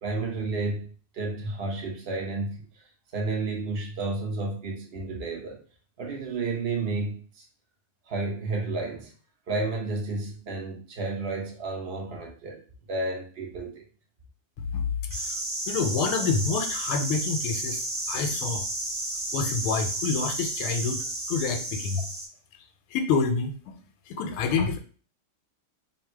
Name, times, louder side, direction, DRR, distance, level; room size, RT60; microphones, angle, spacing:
voice 1, 0.0-2.8 3.1-5.6 6.0-7.4 8.1-9.1 9.5-12.6 12.9-13.8, right 3 dB, 65° right, 0 dB, 0.5 m, -31 dB
voice 2, 14.6-15.4 15.7-18.7 19.3-22.0 22.9-23.8 24.1-24.8, left 5 dB, 80° left, 5 dB, 1.5 m, -28 dB
sound 1, 15.1-22.3, right 1 dB, 30° right, 0.9 m, -32 dB
3.4 x 2.7 x 4.4 m, 0.39 s
omnidirectional pair, 2.3 m